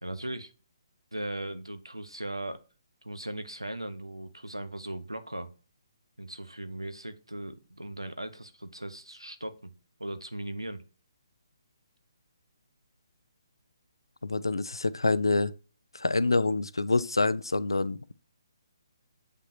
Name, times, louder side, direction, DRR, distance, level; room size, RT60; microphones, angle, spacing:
voice 1, 0.0-0.5 1.1-2.6 3.0-5.5 6.2-9.7 10.0-10.8, right 1 dB, 85° right, 1.0 m, -38 dB
voice 2, 14.2-15.5 15.9-18.1, left 3 dB, 70° left, 0.5 m, -26 dB
8.3 x 5.2 x 2.8 m
figure-of-eight pair, 140°, 2 cm